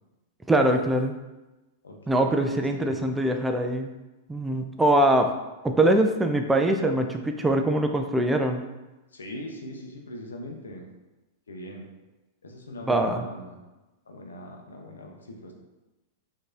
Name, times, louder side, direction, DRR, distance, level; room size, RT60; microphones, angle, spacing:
voice 1, 0.5-1.2 2.1-3.9 4.3-5.3 5.6-8.6 12.8-13.3, right 1 dB, 10° right, 4 dB, 0.3 m, -23 dB
voice 2, 1.8-3.0 9.1-10.9 11.5-11.8 12.4-13.6 14.1-15.5, left 1 dB, 80° left, 2 dB, 0.6 m, -41 dB
4.5 x 2.7 x 2.5 m, 1.1 s
figure-of-eight pair, 100°, 0 cm